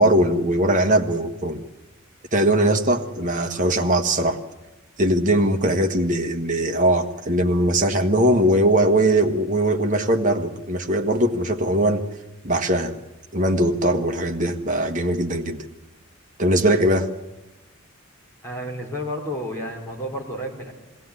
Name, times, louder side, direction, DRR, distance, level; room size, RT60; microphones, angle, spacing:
voice 1, 0.0-1.6 2.3-4.4 5.0-12.0 12.4-13.0 13.3-15.6 16.4-17.1, right 1 dB, 40° right, 5 dB, 1.5 m, -20 dB
voice 2, 18.4-20.7, equal, 10° left, -1 dB, 4.1 m, -31 dB
22.0 x 16.5 x 9.7 m, 1.0 s
head